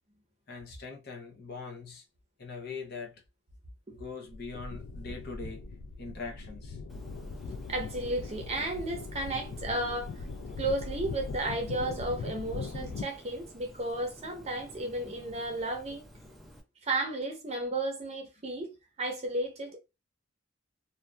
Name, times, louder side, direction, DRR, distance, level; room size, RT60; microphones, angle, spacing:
voice 1, 0.5-2.0 2.4-3.2 3.9-5.6 6.0-6.8, left 4 dB, 55° left, 0.7 m, -42 dB
sound 1, 4.3-13.0, left 4 dB, 80° left, 0.3 m, -40 dB
Bird, 6.9-16.6, left 1 dB, ahead, 0.4 m, -52 dB
voice 2, 7.7-10.2 10.6-16.1 16.8-19.8, right 2 dB, 35° right, 0.6 m, -33 dB
2.6 x 2.2 x 2.2 m
head